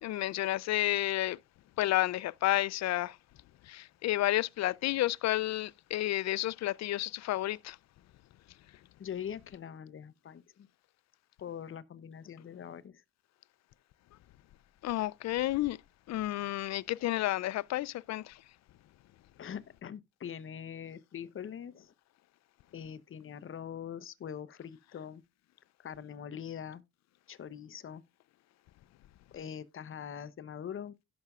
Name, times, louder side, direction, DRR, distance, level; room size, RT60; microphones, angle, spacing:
voice 1, 0.0-1.4 1.8-3.2 3.7-7.8 14.8-15.8 16.1-18.3, left 15 dB, 60° left, 0.5 m, -31 dB
voice 2, 9.0-10.7 11.4-13.0 19.4-21.9 22.7-25.2 25.8-26.8 27.3-28.0 29.3-31.0, left 8 dB, 45° left, 0.8 m, -43 dB
16.5 x 5.9 x 2.4 m
cardioid pair, 90°, 30 cm